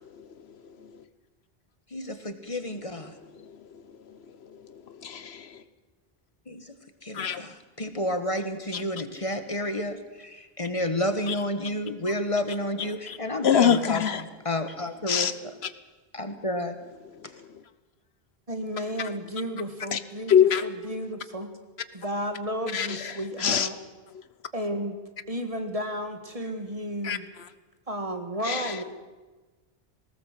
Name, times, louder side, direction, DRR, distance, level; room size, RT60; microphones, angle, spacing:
voice 1, 1.9-3.1 6.5-6.7 7.0-15.5 16.1-16.8, left 1 dB, 35° left, 9 dB, 1.5 m, -31 dB
voice 2, 5.0-5.5 7.1-7.4 8.7-8.8 11.3-11.4 13.1-13.2 13.4-14.2 15.1-15.3 19.9-20.0 20.3-20.7 22.7-23.1 23.4-23.7 27.0-27.2 28.4-28.7, left 8 dB, 85° left, 14 dB, 1.2 m, -23 dB
voice 3, 18.5-21.5 21.9-23.8 24.5-25.0 25.3-27.3 27.9-28.8, equal, 35° right, 6 dB, 1.9 m, -33 dB
19.5 x 18.0 x 7.7 m, 1.2 s
omnidirectional pair, 1.0 m